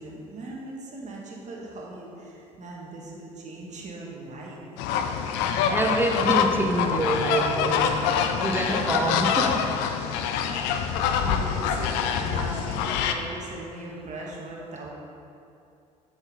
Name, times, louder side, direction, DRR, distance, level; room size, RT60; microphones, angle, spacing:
voice 1, 0.0-4.6 10.4-14.9, right 2 dB, 45° right, -3 dB, 1.7 m, -39 dB
zoo entrance, 4.8-13.1, left 7 dB, 70° left, 0.5 m, -25 dB
voice 2, 5.7-8.1 8.4-9.7, right 2 dB, 10° right, 3 dB, 0.9 m, -26 dB
7.2 x 5.3 x 4.1 m, 2.6 s
hypercardioid pair, 60°, 18 cm